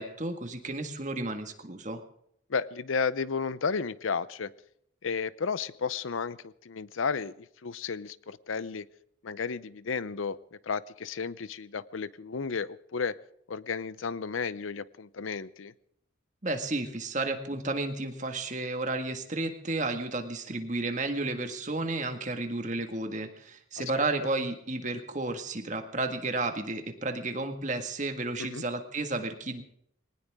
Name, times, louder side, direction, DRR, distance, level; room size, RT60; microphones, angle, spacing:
voice 1, 0.0-2.0 16.4-29.6, right 2 dB, 40° right, 6 dB, 1.8 m, -32 dB
voice 2, 2.5-4.5 5.0-8.9 9.2-13.2 13.5-15.7 23.8-23.9 28.4-28.6, left 5 dB, 85° left, 18 dB, 0.6 m, -33 dB
21.0 x 19.0 x 3.6 m, 0.73 s
head